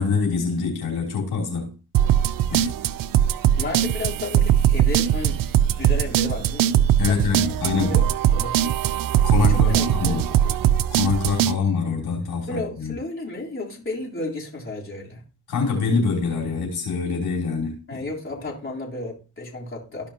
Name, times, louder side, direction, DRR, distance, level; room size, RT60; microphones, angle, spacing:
voice 1, 0.0-1.7 2.5-2.7 7.0-8.1 9.2-10.2 10.9-12.9 15.5-18.0, left 5 dB, 80° left, 3.3 m, -25 dB
sound 1, 1.9-11.5, right 10 dB, 65° right, 0.6 m, -20 dB
voice 2, 3.6-5.5 5.8-7.6 7.8-8.0 8.3-8.7 9.5-10.6 12.5-15.2 17.9-20.1, left 2 dB, 35° left, 3.7 m, -33 dB
14.5 x 5.2 x 2.9 m
cardioid pair, 65°, 37 cm